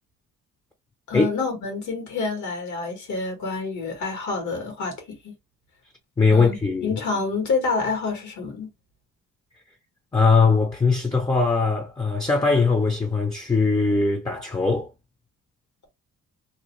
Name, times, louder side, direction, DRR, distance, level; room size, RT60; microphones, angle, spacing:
voice 1, 1.1-5.3 6.3-6.6 6.8-8.7, left 4 dB, 75° left, 1.4 m, -28 dB
voice 2, 6.2-6.9 10.1-14.9, left 4 dB, 15° left, 0.5 m, -20 dB
2.6 x 2.1 x 3.0 m
cardioid pair, 90°, 30 cm